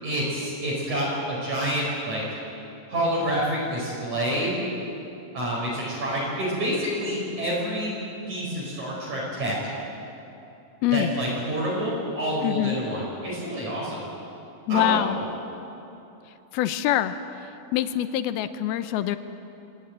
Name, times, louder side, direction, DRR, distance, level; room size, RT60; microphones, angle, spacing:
voice 1, 0.0-2.2 2.9-4.5 5.3-7.9 8.3-9.6 10.9-14.0 14.7-15.0, equal, 50° right, -5 dB, 6.5 m, -28 dB
voice 2, 12.4-12.8 14.7-15.2 16.5-17.1 17.7-19.2, left 13 dB, 90° left, 11 dB, 2.8 m, -24 dB
28.0 x 17.5 x 9.1 m, 2.9 s
omnidirectional pair, 4.3 m